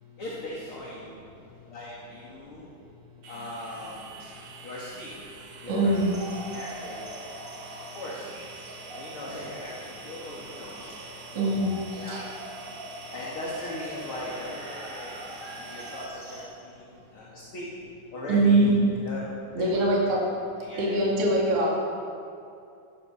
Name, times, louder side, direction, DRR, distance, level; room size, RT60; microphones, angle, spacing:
voice 1, 0.2-1.2 1.7-2.7 3.3-4.0 4.6-5.1 5.6-5.9 6.5-7.2 7.8-8.3 9.0-10.8 11.4-11.6 12.0-12.2 13.1-17.7 18.1-18.7 19.0-19.3 19.6-20.0 20.6-21.0, left 1 dB, 45° left, -6 dB, 2.8 m, -39 dB
sound 1, 3.2-16.0, right 4 dB, 75° right, 2.9 m, -46 dB
voice 2, 5.7-6.1 11.3-11.7 12.1-12.2 18.3-18.8 19.5-20.2 20.8-21.7, right 2 dB, 50° right, -4 dB, 3.2 m, -22 dB
sound 2, 5.9-16.4, right 1 dB, 25° right, 3.7 m, -42 dB
15.5 x 10.5 x 6.4 m, 2.5 s
omnidirectional pair, 3.5 m